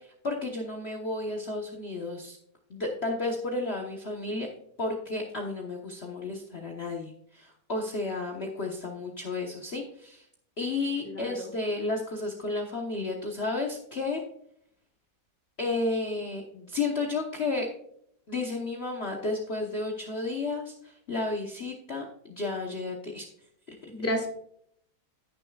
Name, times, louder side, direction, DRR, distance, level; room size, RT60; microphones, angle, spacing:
voice 1, 0.0-2.4 2.7-4.5 4.8-10.3 10.6-14.2 15.6-17.7 18.3-23.3, left 3 dB, 40° left, 0 dB, 1.2 m, -32 dB
voice 2, 11.0-11.5 23.9-24.3, left 1 dB, 10° left, 1 dB, 1.5 m, -31 dB
16.0 x 6.7 x 2.3 m, 0.68 s
omnidirectional pair, 1.9 m